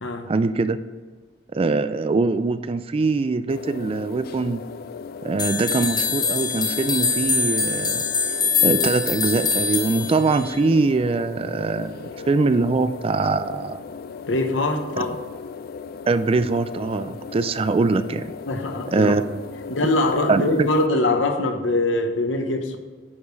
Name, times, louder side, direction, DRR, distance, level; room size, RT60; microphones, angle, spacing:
voice 1, 0.3-0.8 1.5-4.7 5.2-13.8 16.1-18.3 18.9-19.4 20.3-20.7, right 3 dB, 30° right, 12 dB, 0.3 m, -22 dB
sound 1, 3.5-20.9, left 5 dB, 55° left, 0.3 m, -37 dB
sound 2, 5.4-10.6, left 5 dB, 20° left, 0.8 m, -24 dB
voice 2, 14.3-15.2 18.5-19.1 19.7-22.8, left 2 dB, 80° left, 6 dB, 1.0 m, -23 dB
10.0 x 5.0 x 4.6 m, 1.4 s
head